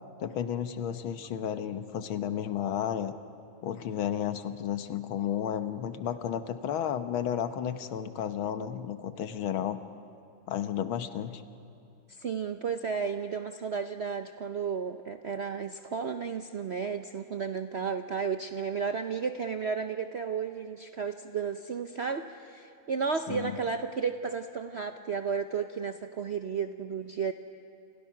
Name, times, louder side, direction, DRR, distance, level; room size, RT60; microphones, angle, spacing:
voice 1, 0.2-3.1 3.6-9.8 10.5-11.4 23.3-23.5, left 9 dB, 90° left, 10 dB, 1.9 m, -32 dB
voice 2, 12.1-27.3, right 6 dB, 65° right, 8 dB, 0.6 m, -33 dB
30.0 x 28.5 x 5.9 m, 2.7 s
omnidirectional pair, 2.2 m